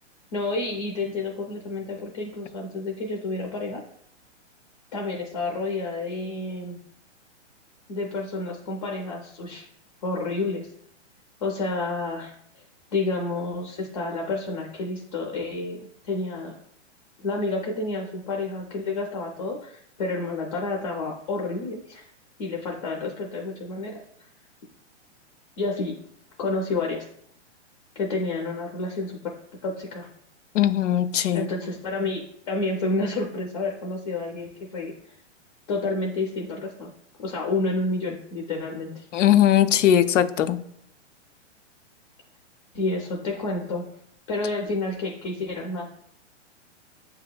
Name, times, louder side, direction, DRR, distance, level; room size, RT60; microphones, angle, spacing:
voice 1, 0.3-3.8 4.9-6.8 7.9-9.7 10.0-10.7 11.4-12.6 12.9-16.5 17.2-22.1 22.4-24.0 25.6-25.9 26.4-27.0 28.0-29.3 29.6-30.1 31.3-35.2 35.7-36.9 37.2-39.1 42.7-43.9 44.3-45.8, left 2 dB, 30° left, 0 dB, 0.5 m, -29 dB
voice 2, 30.5-31.5 39.1-40.6, left 11 dB, 85° left, 11 dB, 0.5 m, -20 dB
7.5 x 2.8 x 2.2 m, 0.68 s
hypercardioid pair, 160°, 36 cm